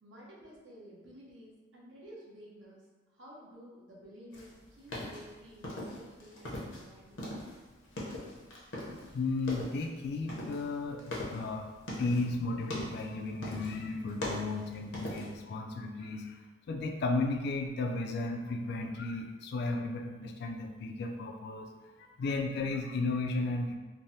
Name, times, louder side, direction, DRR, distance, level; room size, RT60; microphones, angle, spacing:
voice 1, 0.0-2.9 3.1-7.2, equal, 80° right, -5 dB, 0.8 m, -52 dB
sound 1, 4.3-6.8 7.1-9.1 9.4-9.9 10.3-12.3 12.6-13.1 13.4-13.8 14.1-15.4, left 1 dB, 80° left, 0.7 m, -40 dB
voice 2, 9.1-16.4 16.7-21.7 22.0-23.7, left 3 dB, 60° left, 4 dB, 0.3 m, -34 dB
3.2 x 2.0 x 2.7 m, 1.3 s
head